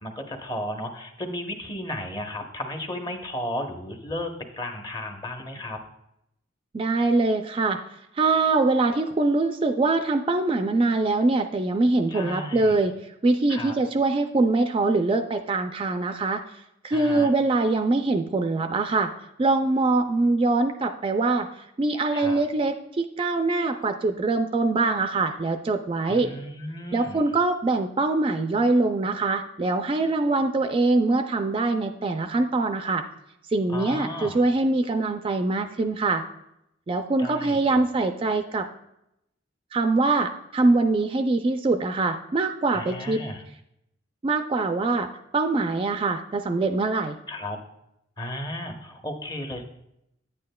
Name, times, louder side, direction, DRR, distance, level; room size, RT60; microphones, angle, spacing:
voice 1, 0.0-5.8 12.1-12.8 13.5-13.8 16.9-17.3 22.1-22.4 26.1-27.2 33.7-34.4 37.2-37.8 42.7-43.4 47.3-47.6 48.2-49.6, left 1 dB, 20° left, 4 dB, 0.8 m, -34 dB
voice 2, 6.7-7.8 8.2-12.9 13.2-16.4 16.8-19.1 19.4-26.3 26.9-33.0 33.5-36.2 36.9-38.7 39.7-43.2 44.2-47.2, right 3 dB, 30° right, 7 dB, 0.3 m, -23 dB
9.6 x 8.5 x 2.2 m, 0.81 s
head